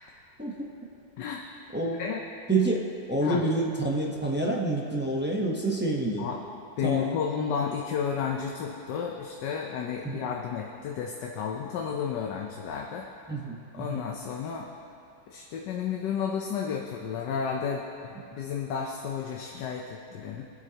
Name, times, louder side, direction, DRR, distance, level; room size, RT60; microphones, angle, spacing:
voice 1, 0.4-0.7 1.7-2.0 2.5-6.3 6.8-7.2 10.0-10.2 13.3-14.0 18.3-18.4, right 2 dB, 10° right, -2 dB, 0.4 m, -28 dB
voice 2, 6.8-13.1 13.7-14.7 15.3-20.4, left 7 dB, 70° left, 0 dB, 1.3 m, -32 dB
23.5 x 8.1 x 2.9 m, 2.7 s
omnidirectional pair, 2.1 m